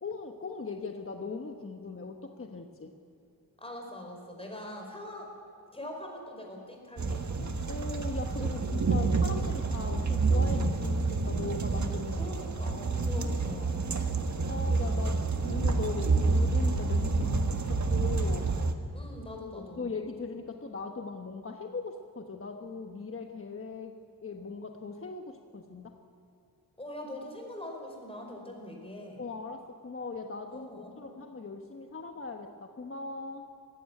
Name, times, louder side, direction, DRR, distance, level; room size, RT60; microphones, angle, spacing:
voice 1, 0.0-2.9 7.4-12.2 14.5-18.6 19.5-23.9 24.2-26.0 29.2-33.5, left 4 dB, 35° left, 4 dB, 1.2 m, -39 dB
voice 2, 3.6-5.3 5.7-7.2 12.2-14.0 18.9-19.9 26.8-29.2 30.5-31.0, left 1 dB, 15° left, 1 dB, 4.9 m, -43 dB
sound 1, 7.0-18.7, right 3 dB, 50° right, 1.5 m, -28 dB
19.0 x 15.5 x 9.7 m, 2.6 s
wide cardioid pair, 110°, 36 cm